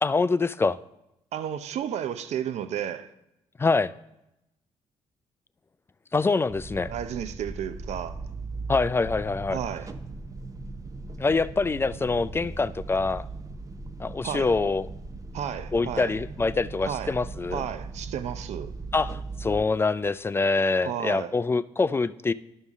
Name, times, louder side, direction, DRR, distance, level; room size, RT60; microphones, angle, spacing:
voice 1, 0.0-0.8 3.6-3.9 6.1-6.9 8.7-9.6 11.2-13.3 14.0-14.9 15.7-17.6 18.9-22.3, left 3 dB, 20° left, 0.3 m, -25 dB
voice 2, 1.3-3.1 6.9-8.2 9.5-9.9 14.2-14.5 15.3-16.2 16.8-17.2 17.5-18.7 20.8-21.3, right 9 dB, 70° right, 0.5 m, -32 dB
sound 1, 6.5-19.6, right 3 dB, 30° right, 0.7 m, -38 dB
11.0 x 5.4 x 3.6 m
supercardioid pair, 70°, 12 cm